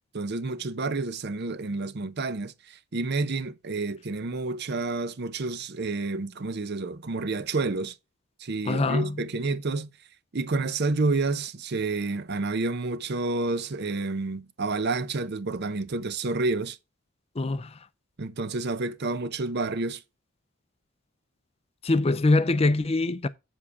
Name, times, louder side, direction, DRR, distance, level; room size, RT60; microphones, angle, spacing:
voice 1, 0.1-7.9 8.4-9.9 10.3-16.8 18.2-20.0, right 3 dB, 50° right, 0.7 m, -29 dB
voice 2, 8.7-9.2 17.4-17.8 21.8-23.3, left 2 dB, 25° left, 0.5 m, -23 dB
7.4 x 7.0 x 4.8 m
head